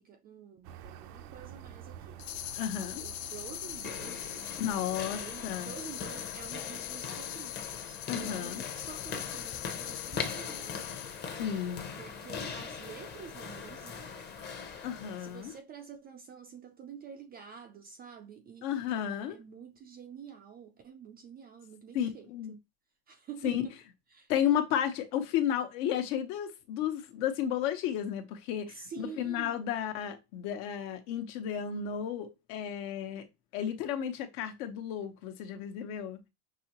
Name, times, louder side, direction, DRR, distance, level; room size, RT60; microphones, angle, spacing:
voice 1, 0.0-4.5 5.1-10.9 12.0-14.3 15.2-22.6 23.1-23.8 24.1-24.3 28.7-29.7, right 7 dB, 20° right, 0.4 m, -48 dB
sound 1, 0.6-6.7, right 9 dB, 90° right, 0.8 m, -50 dB
sound 2, 2.2-11.4, left 16 dB, 85° left, 0.6 m, -41 dB
voice 2, 2.6-3.0 4.6-5.7 8.1-8.6 11.4-11.9 14.8-15.5 18.6-19.4 21.9-22.5 23.4-23.6 24.3-33.3 33.5-36.2, left 9 dB, 65° left, 1.1 m, -33 dB
sound 3, 3.6-15.6, left 5 dB, 25° left, 0.7 m, -41 dB
6.1 x 2.9 x 2.9 m
cardioid pair, 150°, 45 cm